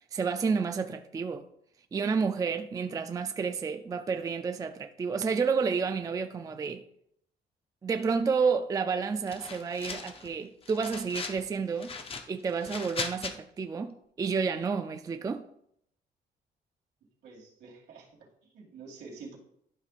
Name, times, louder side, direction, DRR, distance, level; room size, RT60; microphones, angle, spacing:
voice 1, 0.1-1.4 1.9-6.8 7.8-11.9 12.3-15.4, right 5 dB, 20° right, 0.3 m, -30 dB
sound 1, 9.3-10.3 10.6-11.4 11.8-13.3, left 4 dB, 35° left, 0.7 m, -38 dB
voice 2, 17.2-19.4, right 4 dB, 75° right, 2.4 m, -48 dB
11.5 x 5.3 x 2.5 m
cardioid pair, 125°, 17 cm